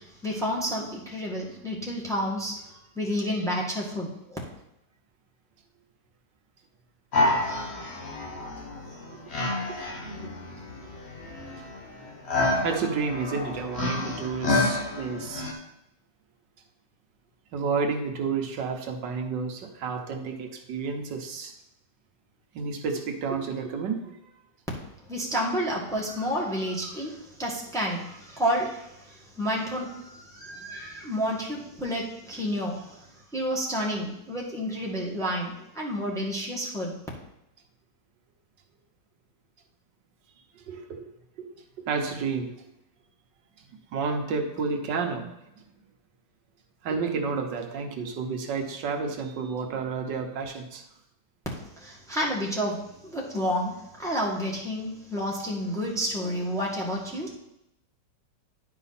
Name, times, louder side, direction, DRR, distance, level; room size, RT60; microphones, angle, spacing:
voice 1, 0.2-2.5 3.0-4.1 25.1-27.1 27.4-28.8 29.4-30.0 30.3-32.8 33.3-36.9 51.8-52.8 53.0-53.7 54.0-57.3, equal, ahead, -3 dB, 1.4 m, -29 dB
sound 1, 7.1-15.5, left 2 dB, 40° left, 1.3 m, -29 dB
voice 2, 12.6-15.5 17.5-21.5 22.5-24.1 40.5-41.1 41.4-41.5 41.8-42.6 43.9-45.6 46.8-50.8, right 5 dB, 80° right, 3 dB, 1.6 m, -31 dB
10.5 x 5.0 x 4.2 m, 0.83 s
omnidirectional pair, 1.9 m